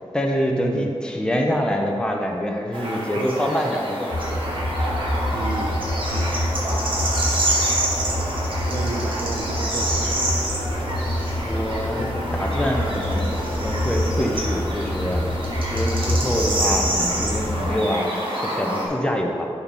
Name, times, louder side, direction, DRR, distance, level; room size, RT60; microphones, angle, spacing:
voice 1, 0.0-4.3 11.4-13.3 13.6-15.2 15.7-19.5, equal, 10° left, 1 dB, 0.7 m, -25 dB
voice 2, 0.5-0.9 5.3-6.4 6.7-6.9 8.5-10.2, right 4 dB, 85° right, 0 dB, 0.5 m, -33 dB
sound 1, 2.7-18.9, right 1 dB, 55° right, 1.4 m, -27 dB
sound 2, 4.1-17.7, left 1 dB, 50° left, 1.9 m, -26 dB
6.6 x 4.2 x 6.1 m, 2.3 s
wide cardioid pair, 135°, 10 cm